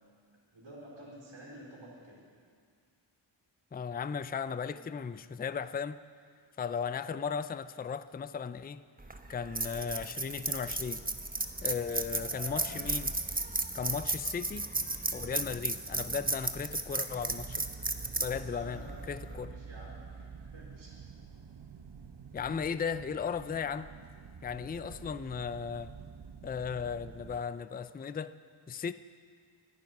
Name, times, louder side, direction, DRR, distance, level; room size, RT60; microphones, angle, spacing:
voice 1, 0.5-2.2 4.7-4.8 12.1-12.6 18.5-20.9 24.5-25.2, equal, 75° right, -7 dB, 4.4 m, -50 dB
voice 2, 3.7-6.0 6.6-8.8 9.3-11.0 11.6-13.1 13.7-14.7 15.1-17.7 18.2-19.5 22.3-23.9 24.4-25.9 26.4-28.3 28.7-28.9, left 6 dB, 20° left, 14 dB, 0.4 m, -36 dB
sound 1, 9.0-19.4, right 2 dB, 20° right, 0.9 m, -35 dB
sound 2, 17.3-27.4, right 6 dB, 55° right, 0.9 m, -48 dB
24.5 x 9.3 x 5.5 m, 2.1 s
wide cardioid pair, 70°, 49 cm